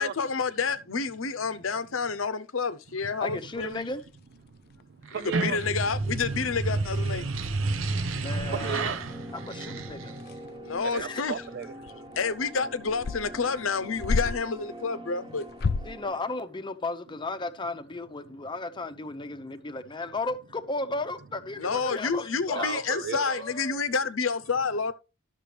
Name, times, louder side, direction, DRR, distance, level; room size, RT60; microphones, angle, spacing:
voice 1, 0.0-3.9 5.2-7.2 10.6-11.3 12.2-15.5 21.6-24.9, left 5 dB, 80° left, 0.8 m, -29 dB
voice 2, 3.2-4.0 8.2-9.0 9.3-10.2 11.0-11.2 15.8-22.9 23.3-23.8, left 2 dB, 25° left, 0.7 m, -35 dB
sound 1, 3.6-5.1 5.6-5.7 5.9-6.2 6.5-6.6 6.9-7.4 7.8-7.9 8.4-14.6 15.4-16.1, left 4 dB, 50° left, 0.4 m, -34 dB
voice 3, 4.5-5.6 7.5-9.4 9.8-12.1 18.4-18.5 19.2-19.6 22.5-23.4, right 7 dB, 55° right, 0.4 m, -38 dB
sound 2, 5.1-10.4, right 3 dB, 75° right, 0.9 m, -31 dB
sound 3, 5.2-16.1, equal, 20° right, 1.1 m, -45 dB
11.5 x 6.8 x 3.3 m
head